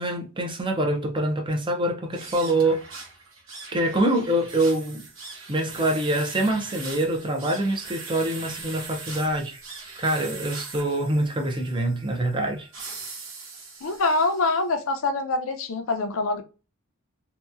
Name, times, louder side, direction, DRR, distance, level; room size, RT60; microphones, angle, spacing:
voice 1, 0.0-2.8 3.7-5.1 5.5-9.6 10.0-12.7, right 1 dB, 25° right, 0.6 m, -25 dB
sound 1, 2.1-14.6, right 4 dB, 70° right, 0.9 m, -41 dB
voice 2, 13.8-16.4, left 3 dB, 70° left, 0.5 m, -25 dB
2.8 x 2.2 x 2.4 m
head